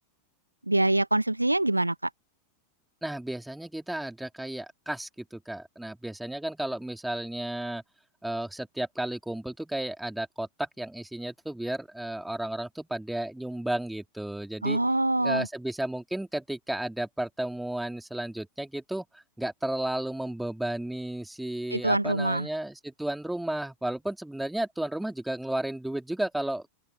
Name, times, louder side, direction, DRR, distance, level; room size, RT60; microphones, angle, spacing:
voice 1, 0.7-2.1 14.6-15.5 21.7-22.5, right 2 dB, 85° right, 1.1 m, -25 dB
voice 2, 3.0-7.8 8.2-14.8 15.2-26.7, right 1 dB, 5° right, 3.2 m, -33 dB
open air
figure-of-eight pair, 90°, 0 cm